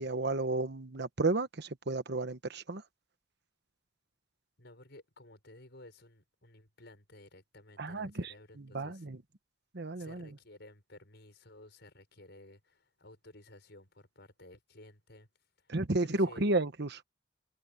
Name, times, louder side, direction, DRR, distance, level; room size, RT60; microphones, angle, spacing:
voice 1, 0.0-2.8 7.8-9.2 9.7-10.3 15.7-17.0, right 2 dB, 60° right, 1.1 m, -32 dB
voice 2, 4.6-9.1 10.0-15.3 15.6-16.4, left 1 dB, 60° left, 6.6 m, -55 dB
head